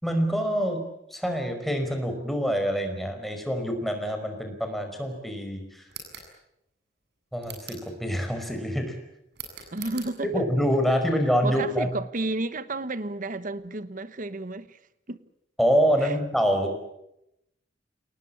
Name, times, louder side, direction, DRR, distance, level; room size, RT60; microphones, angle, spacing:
voice 1, 0.0-0.8 1.1-5.9 7.3-9.0 10.2-11.9 15.6-16.8, equal, ahead, 5.1 m, -26 dB
sound 1, 5.9-6.3 7.4-7.9 9.3-10.1, right 6 dB, 65° right, 7.7 m, -42 dB
voice 2, 9.7-10.3 11.4-14.8 15.1-15.2 16.0-16.2, right 2 dB, 50° right, 1.3 m, -32 dB
28.5 x 19.5 x 8.7 m
head